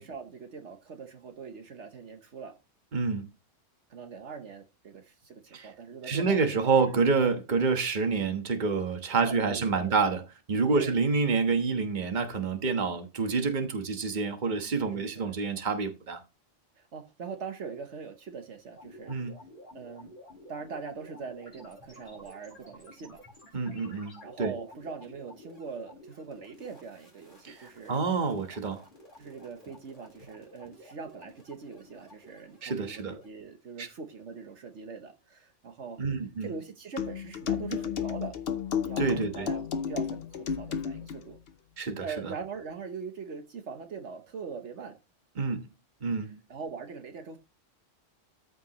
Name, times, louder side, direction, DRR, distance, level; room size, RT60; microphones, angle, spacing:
voice 1, 0.0-2.6 3.9-6.7 9.3-10.1 10.7-11.0 14.8-15.3 16.8-19.2 19.7-20.1 20.5-23.2 24.2-28.0 29.2-36.0 36.4-38.4 38.8-41.4 42.0-45.0 46.2-47.4, right 5 dB, 70° right, 1.3 m, -42 dB
voice 2, 2.9-3.3 5.5-5.7 6.1-10.2 10.5-16.2 19.1-19.4 23.5-24.5 27.4-28.8 32.6-33.2 33.8-33.9 36.0-36.5 39.0-39.5 41.8-42.3 45.4-45.7 46.0-46.4, right 4 dB, 40° right, 1.3 m, -28 dB
sound 1, 18.7-33.3, left 1 dB, 40° left, 3.8 m, -52 dB
sound 2, 37.0-41.2, left 7 dB, 55° left, 0.9 m, -32 dB
13.5 x 5.3 x 3.0 m
omnidirectional pair, 1.3 m